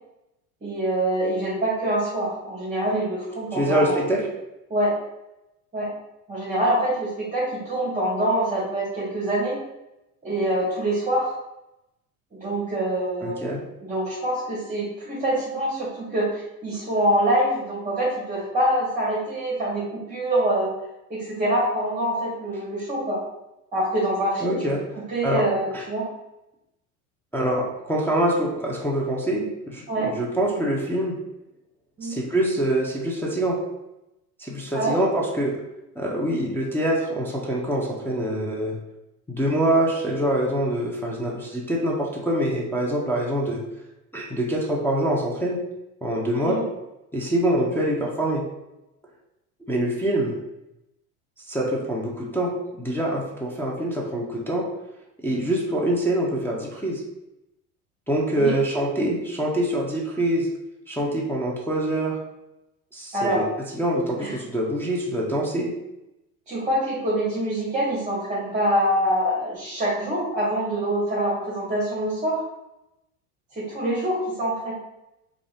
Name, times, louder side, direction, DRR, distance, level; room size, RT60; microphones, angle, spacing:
voice 1, 0.6-4.0 4.7-4.9 5.7-5.9 6.3-9.6 10.2-11.3 12.3-13.5 13.8-20.8 21.1-23.2 23.7-24.6 25.1-26.0 29.9-30.1 32.0-32.2 34.7-35.0 46.4-46.6 58.4-58.6 63.1-63.4 64.2-64.3 66.5-72.4 73.5-74.7, right 1 dB, 15° right, -5 dB, 0.9 m, -25 dB
voice 2, 3.5-4.2 13.2-13.6 24.4-24.8 25.2-25.4 25.7-25.8 27.3-31.1 32.0-33.6 34.4-35.6 36.0-38.8 39.3-43.6 44.1-45.6 46.0-46.6 47.1-48.4 49.7-50.3 51.5-54.7 55.2-57.0 58.1-60.5 60.9-62.2 62.9-63.4 63.7-65.7, right 1 dB, 5° left, -4 dB, 0.4 m, -25 dB
2.4 x 2.3 x 3.3 m, 0.90 s
hypercardioid pair, 85°, 45 cm